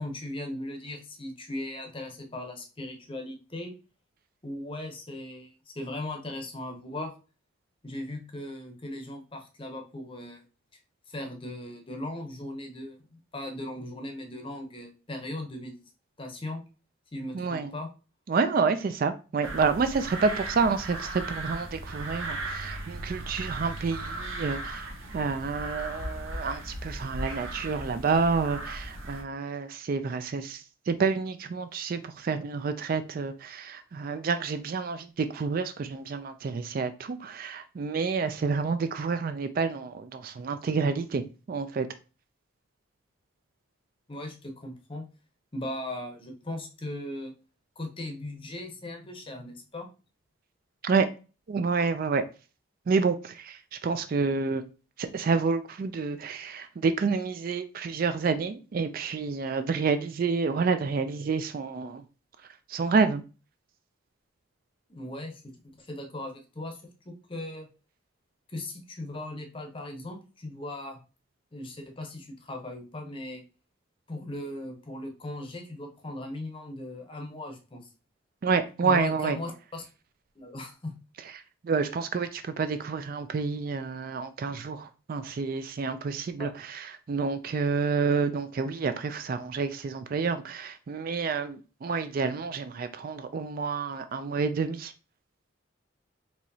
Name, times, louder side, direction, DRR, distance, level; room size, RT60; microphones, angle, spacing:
voice 1, 0.0-3.7 4.4-7.1 7.8-10.4 11.1-15.8 16.2-16.6 17.1-17.9 44.1-45.0 45.5-47.3 47.8-49.9 64.9-65.5 65.8-67.7 68.5-71.0 71.5-73.4 74.1-77.9 78.8-79.8 80.4-80.9 86.4-86.5, left 1 dB, 25° left, 0.7 m, -38 dB
voice 2, 17.3-17.7 18.3-24.9 25.1-30.6 30.9-41.2 41.5-41.9 50.8-51.1 51.5-52.2 52.9-54.6 55.0-62.0 62.7-63.2 78.4-79.4 81.6-94.9, right 4 dB, 45° right, 0.3 m, -29 dB
sound 1, 19.4-29.2, right 2 dB, 75° right, 0.8 m, -37 dB
4.6 x 3.0 x 2.7 m
head